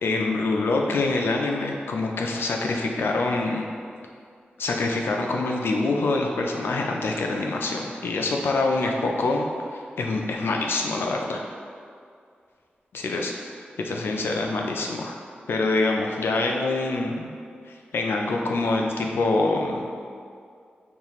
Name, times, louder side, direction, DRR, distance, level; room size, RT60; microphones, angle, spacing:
voice 1, 0.0-3.6 4.6-11.4 12.9-13.3 13.8-15.2 15.5-17.3 17.7-19.9, left 3 dB, 85° left, 1 dB, 0.3 m, -25 dB
5.3 x 2.4 x 3.0 m, 2.3 s
wide cardioid pair, 95°, 4 cm